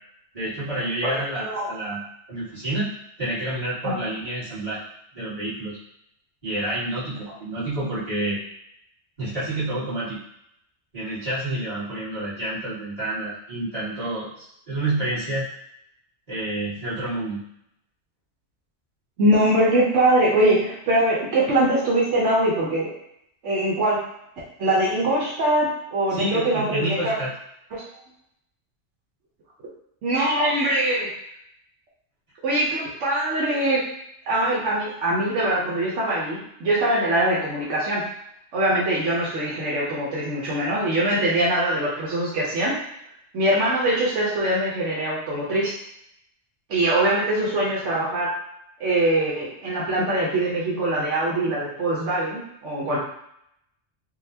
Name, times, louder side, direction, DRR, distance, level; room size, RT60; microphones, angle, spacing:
voice 1, 0.3-2.0 2.3-2.9 3.2-4.8 5.1-5.8 6.4-8.4 9.2-10.2 10.9-15.4 16.3-17.4 26.1-27.3, right 1 dB, 30° right, -12 dB, 1.7 m, -29 dB
voice 2, 1.0-1.7 3.8-3.9 19.2-23.0 23.4-24.0 24.6-27.1 27.7-27.8 30.0-31.1 32.4-33.8 34.3-38.1 38.5-42.7 43.3-45.7 46.7-48.3 48.8-53.0, right 1 dB, 85° right, -6 dB, 1.1 m, -22 dB
3.9 x 2.3 x 2.7 m, 0.75 s
omnidirectional pair, 1.2 m